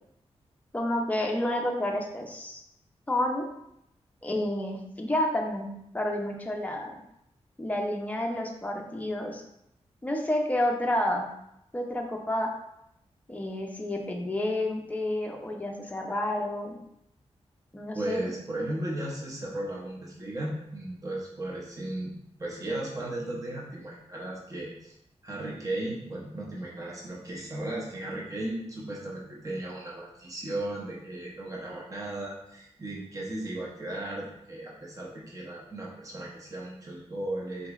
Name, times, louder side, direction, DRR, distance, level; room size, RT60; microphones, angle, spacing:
voice 1, 0.7-2.6 3.1-3.5 4.2-6.9 7.6-9.4 10.0-11.3 11.7-12.5 13.3-16.8 17.7-18.3, left 1 dB, 15° left, 1 dB, 0.5 m, -30 dB
voice 2, 17.9-22.1 22.4-24.9 25.2-37.7, right 1 dB, 30° right, -4 dB, 0.7 m, -36 dB
3.8 x 3.0 x 2.3 m, 0.78 s
wide cardioid pair, 110°, 11 cm